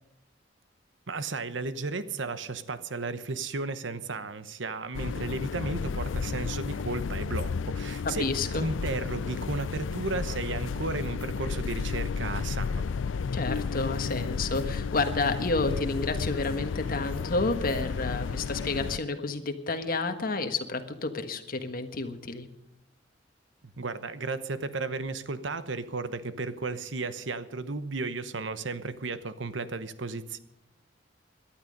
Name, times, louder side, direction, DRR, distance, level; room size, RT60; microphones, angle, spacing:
voice 1, 1.1-12.9 23.8-30.4, right 3 dB, 70° right, 13 dB, 1.0 m, -34 dB
sound 1, 4.9-19.0, left 5 dB, 75° left, 0.4 m, -32 dB
voice 2, 8.2-8.6 13.3-22.5, left 3 dB, 50° left, 7 dB, 1.5 m, -30 dB
18.0 x 12.0 x 5.3 m, 0.84 s
head